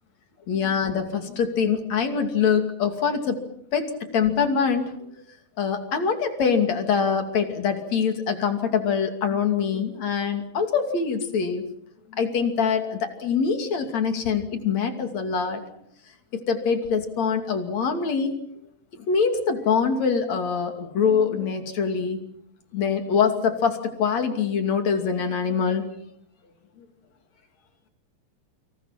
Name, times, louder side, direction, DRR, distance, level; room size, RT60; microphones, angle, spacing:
voice 1, 0.5-3.4 3.7-5.0 5.6-11.6 12.1-15.6 16.3-18.4 19.1-22.2 22.7-25.9, left 6 dB, 55° left, 6 dB, 3.8 m, -24 dB
29.0 x 26.0 x 5.8 m, 0.70 s
omnidirectional pair, 3.9 m